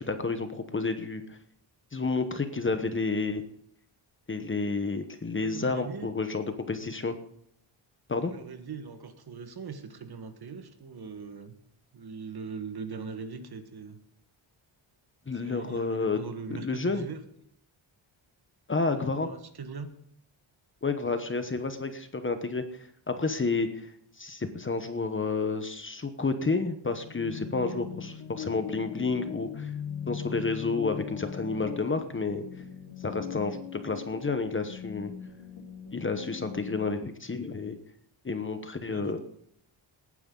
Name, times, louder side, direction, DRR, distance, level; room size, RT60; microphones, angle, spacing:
voice 1, 0.0-1.4 1.9-3.4 4.3-7.2 8.1-8.3 15.3-17.0 18.7-19.3 20.8-22.6 23.1-23.9 24.2-29.7 30.1-32.4 33.0-33.6 33.8-35.1 35.9-37.8 38.2-39.2, left 4 dB, 25° left, 8 dB, 1.0 m, -30 dB
voice 2, 5.4-6.1 8.2-11.5 11.9-14.0 15.3-17.2 18.9-19.9 38.8-39.2, right 5 dB, 50° right, 8 dB, 1.6 m, -41 dB
sound 1, 27.0-36.9, left 8 dB, 80° left, 1.6 m, -40 dB
18.5 x 9.7 x 3.9 m, 0.69 s
wide cardioid pair, 160°, 48 cm